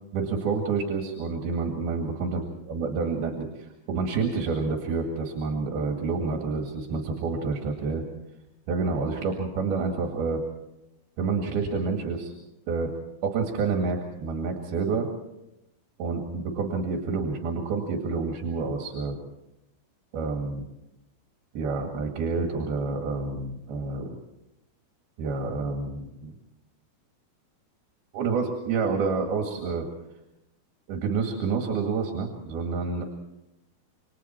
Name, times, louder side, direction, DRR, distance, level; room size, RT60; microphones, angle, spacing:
voice 1, 0.1-2.4 2.7-8.0 8.7-10.4 11.2-12.3 12.7-12.9 13.2-15.1 16.0-19.2 20.1-20.7 21.6-24.1 25.2-26.3 28.1-29.9 30.9-33.0, right 4 dB, 75° right, 3 dB, 3.9 m, -28 dB
28.0 x 24.0 x 4.4 m, 0.89 s
omnidirectional pair, 4.4 m